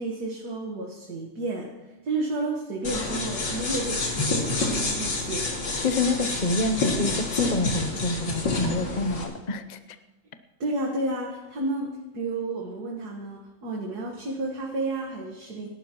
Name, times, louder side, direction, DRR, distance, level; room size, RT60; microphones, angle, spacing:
voice 1, 0.0-5.6 10.6-15.7, right 2 dB, 65° right, -1 dB, 2.0 m, -31 dB
sound 1, 2.8-9.2, left 3 dB, 85° left, 3.0 m, -28 dB
voice 2, 5.8-9.8, left 2 dB, 45° left, 9 dB, 0.5 m, -27 dB
26.5 x 12.0 x 3.0 m, 1.1 s
omnidirectional pair, 1.9 m